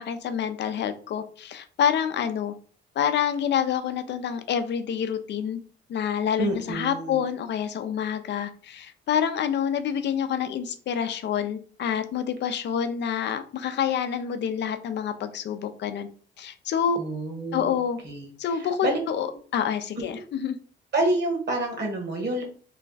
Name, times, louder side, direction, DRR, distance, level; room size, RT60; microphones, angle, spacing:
voice 1, 0.0-2.5 3.0-5.6 5.9-16.1 16.4-17.0 17.5-18.0 18.4-19.3 19.5-20.6, left 8 dB, 60° left, 10 dB, 0.5 m, -27 dB
voice 2, 6.4-7.2 17.0-17.7 18.0-19.0 20.0-20.1 20.9-22.4, right 2 dB, 60° right, 3 dB, 1.4 m, -28 dB
3.2 x 2.3 x 3.9 m, 0.43 s
cardioid pair, 90°, 20 cm